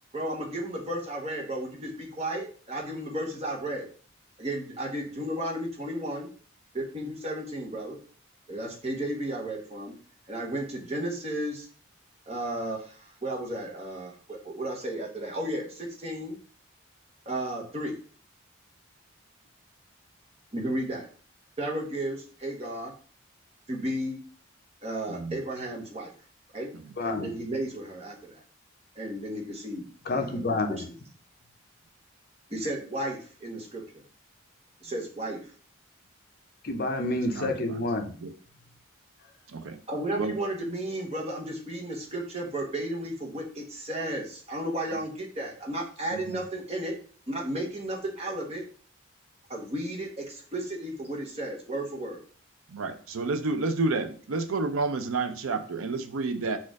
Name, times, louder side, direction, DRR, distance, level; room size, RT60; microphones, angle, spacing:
voice 1, 0.1-3.9 4.4-6.3 6.7-8.0 8.5-9.9 10.3-11.7 12.3-16.4 17.3-18.0 20.5-21.1 21.6-22.9 23.7-24.2 24.8-26.1 26.5-26.7 27.0-28.4 29.0-30.4 30.7-30.8 32.5-34.0 34.8-35.4 39.9-47.0 47.3-48.6 49.5-52.2, right 1 dB, 30° right, 1.0 m, -33 dB
voice 2, 27.0-27.3 30.1-30.9 36.6-38.1, left 2 dB, 45° left, 0.6 m, -29 dB
voice 3, 37.4-37.8 38.2-38.3 39.5-39.8 40.2-40.3 46.1-46.4 52.7-56.6, right 3 dB, 85° right, 0.5 m, -30 dB
4.3 x 2.5 x 4.6 m
head